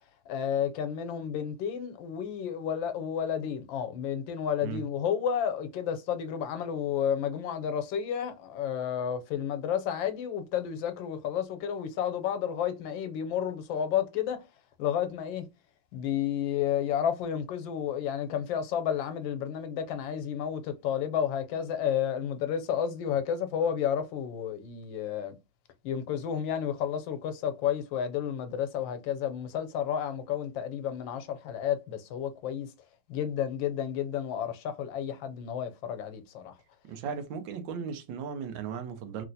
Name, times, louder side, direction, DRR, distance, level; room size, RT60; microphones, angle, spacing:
voice 1, 0.3-14.4 14.8-15.5 15.9-25.4 25.8-32.7 33.1-36.6, left 9 dB, 85° left, 1.3 m, -31 dB
voice 2, 36.9-39.2, right 6 dB, 90° right, 1.4 m, -36 dB
3.0 x 3.0 x 2.6 m
omnidirectional pair, 2.1 m